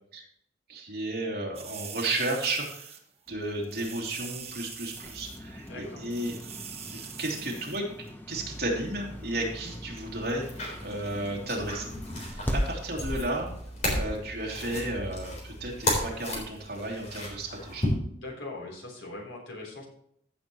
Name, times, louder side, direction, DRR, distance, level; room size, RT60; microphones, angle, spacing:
voice 1, 0.7-2.9 3.3-6.3 6.9-7.9 8.3-13.5 13.9-17.9, right 1 dB, 55° right, -1 dB, 2.8 m, -33 dB
sound 1, 1.5-3.0 3.3-3.4 3.6-5.4 5.7-5.8 6.0-7.8 8.1-8.2, right 7 dB, 35° right, 1.4 m, -43 dB
sound 2, 3.3-14.3, equal, 10° left, 1.0 m, -41 dB
voice 2, 5.7-6.1 18.1-19.9, left 2 dB, 85° left, 0 dB, 3.7 m, -41 dB
sound 3, 8.3-17.9, left 1 dB, 40° left, 3.7 m, -35 dB
15.5 x 7.0 x 3.1 m, 0.69 s
head